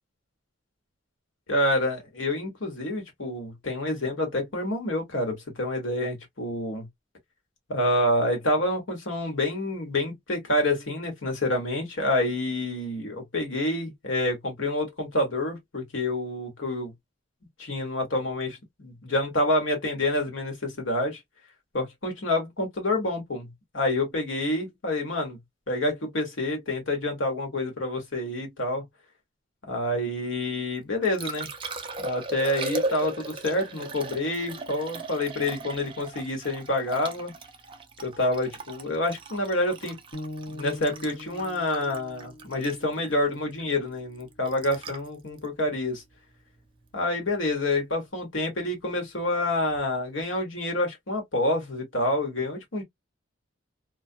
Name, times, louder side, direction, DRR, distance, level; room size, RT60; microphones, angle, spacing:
voice 1, 1.5-6.9 7.7-16.9 17.6-21.2 21.7-25.4 25.7-28.9 29.7-31.5 32.0-37.3 38.0-40.0 40.5-46.0 46.9-52.8, left 1 dB, 65° left, 1.2 m, -28 dB
Liquid, 30.8-46.9 49.7-49.8, right 2 dB, 25° right, 0.4 m, -38 dB
sound 1, 40.1-44.3, left 1 dB, 45° left, 1.0 m, -43 dB
2.4 x 2.2 x 2.6 m
head